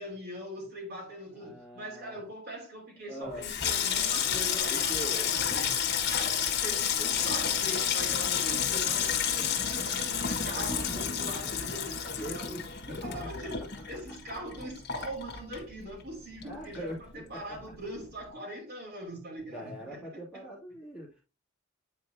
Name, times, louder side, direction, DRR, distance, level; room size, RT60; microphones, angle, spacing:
voice 1, 0.0-5.8 6.1-12.6 12.9-20.4, right 1 dB, 50° right, 2.9 m, -41 dB
voice 2, 1.3-2.2 3.0-3.4 4.6-5.3 6.2-6.5 9.4-9.6 12.2-13.3 16.4-17.0 17.3-17.6 19.5-21.2, right 1 dB, 5° right, 2.2 m, -42 dB
Water tap faucet / Sink (filling or washing), 3.3-16.1 16.4-17.1 17.3-17.7, left 8 dB, 50° left, 1.3 m, -30 dB
8.8 x 4.5 x 2.7 m
head